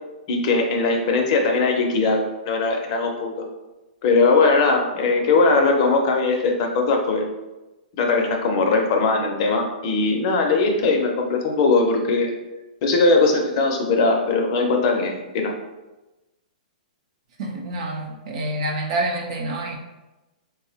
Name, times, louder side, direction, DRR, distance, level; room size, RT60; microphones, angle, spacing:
voice 1, 0.3-3.3 4.0-7.3 8.0-12.3 12.8-15.5, left 3 dB, 40° left, 2 dB, 0.5 m, -20 dB
voice 2, 17.4-19.8, right 1 dB, 50° right, 1 dB, 0.6 m, -27 dB
4.5 x 2.0 x 2.7 m, 1.1 s
hypercardioid pair, 155°, 5 cm